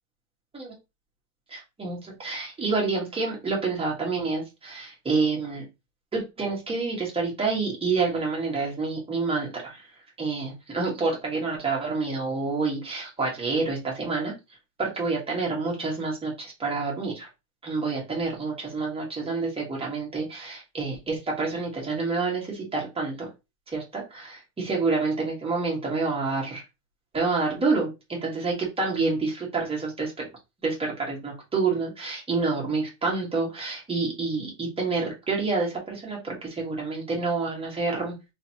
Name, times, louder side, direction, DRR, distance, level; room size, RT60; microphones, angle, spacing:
voice 1, 1.5-5.7 6.1-9.8 10.2-14.3 14.8-17.3 17.6-23.3 23.7-26.6 27.1-30.3 30.6-38.2, right 4 dB, 15° right, -2 dB, 1.8 m, -28 dB
3.7 x 3.4 x 3.0 m, 0.25 s
supercardioid pair, 135°, 43 cm